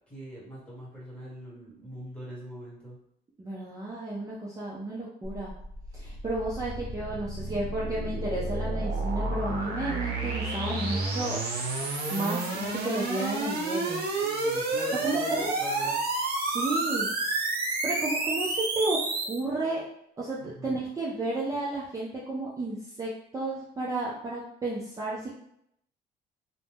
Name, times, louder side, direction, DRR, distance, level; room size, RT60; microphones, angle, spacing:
voice 1, 0.1-3.0 14.2-16.0 20.4-20.8, right 1 dB, 5° left, -6 dB, 1.5 m, -42 dB
voice 2, 3.4-5.5 5.9-11.4 12.1-14.0 15.0-15.5 16.4-17.1 17.8-19.0 19.2-19.8 20.2-25.4, right 2 dB, 20° right, -6 dB, 0.5 m, -32 dB
sound 1, 5.2-19.4, right 2 dB, 65° right, 0.7 m, -30 dB
2.5 x 2.1 x 3.4 m, 0.76 s
cardioid pair, 110°, 17 cm